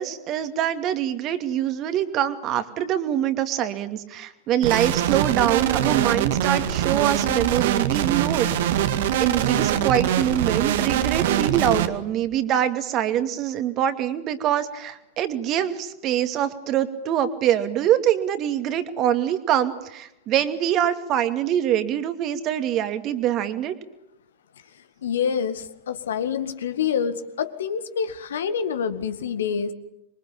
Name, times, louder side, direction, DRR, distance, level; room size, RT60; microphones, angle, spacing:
voice 1, 0.0-8.8 9.2-23.7, right 10 dB, 35° right, 9 dB, 2.6 m, -24 dB
sound 1, 4.6-11.9, right 10 dB, 55° right, 2.0 m, -23 dB
voice 2, 25.0-29.7, left 7 dB, 65° left, 11 dB, 1.9 m, -27 dB
26.5 x 23.5 x 8.9 m, 0.82 s
figure-of-eight pair, 90°, 0 cm